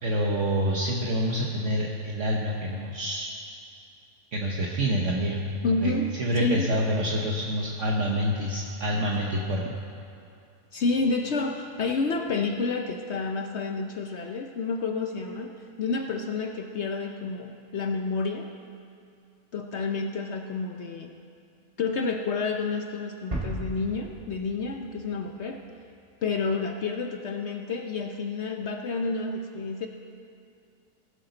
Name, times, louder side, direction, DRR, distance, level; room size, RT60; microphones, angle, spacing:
voice 1, 0.0-3.3 4.3-5.4 5.8-5.9 6.2-9.6, equal, 55° right, -2 dB, 1.2 m, -27 dB
voice 2, 5.6-6.1 6.4-6.7 9.7-9.8 10.7-18.5 19.5-21.2 21.8-25.6 26.2-29.9, left 4 dB, 60° left, 4 dB, 0.7 m, -29 dB
sound 1, 23.3-26.0, right 1 dB, 25° right, 1.4 m, -36 dB
19.0 x 8.5 x 3.9 m, 2.5 s
omnidirectional pair, 1.6 m